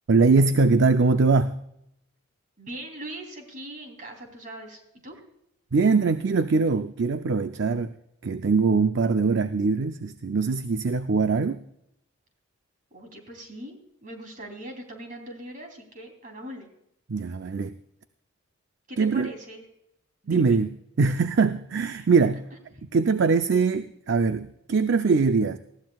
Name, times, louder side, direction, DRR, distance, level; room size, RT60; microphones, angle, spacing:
voice 1, 0.1-1.5 5.7-7.9 8.2-11.6 17.1-17.8 19.0-19.3 20.3-22.4 22.9-25.6, right 4 dB, 55° right, 9 dB, 0.5 m, -22 dB
voice 2, 2.6-5.1 12.9-16.7 18.9-19.6 20.2-20.6 22.0-22.1, right 1 dB, 35° right, 3 dB, 3.2 m, -41 dB
19.5 x 15.5 x 2.3 m, 0.78 s
head